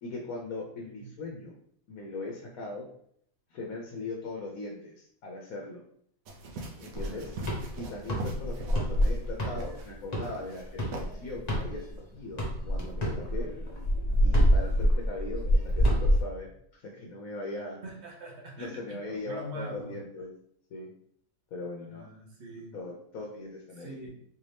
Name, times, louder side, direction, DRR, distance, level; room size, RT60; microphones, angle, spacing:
voice 1, 0.0-1.5 1.9-2.9 3.5-5.8 6.8-7.3 7.8-13.5 14.2-17.8 18.6-20.3 20.7-20.9 21.5-22.1 22.7-24.0, left 2 dB, 85° left, -1 dB, 1.1 m, -39 dB
sound 1, 6.3-9.3 9.6-9.9 10.2-10.6 10.9-11.1, right 2 dB, 80° right, 1.2 m, -40 dB
voice 2, 6.9-7.3 17.8-20.0 21.9-22.7 23.8-24.1, right 1 dB, 55° right, -1 dB, 1.2 m, -43 dB
sound 2, 7.0-12.0 12.4-16.2, equal, 35° left, 0.9 m, -26 dB
4.3 x 2.7 x 3.3 m, 0.67 s
omnidirectional pair, 1.4 m